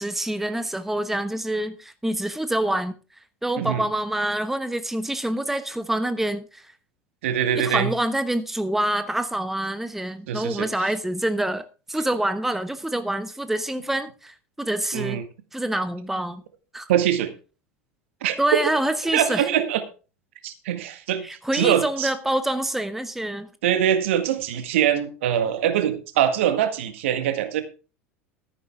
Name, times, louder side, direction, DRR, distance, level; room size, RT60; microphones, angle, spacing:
voice 1, 0.0-2.9 3.4-6.7 7.6-15.2 15.5-16.4 16.7-16.9 18.4-19.5 21.2-23.5, right 1 dB, 5° right, 0.9 m, -26 dB
voice 2, 7.2-7.9 10.3-10.7 14.9-15.2 16.9-17.3 18.2-18.6 19.1-19.8 20.4-21.3 21.5-22.1 23.6-27.6, right 10 dB, 60° right, 1.9 m, -23 dB
14.0 x 10.5 x 3.6 m
figure-of-eight pair, 80°, 7 cm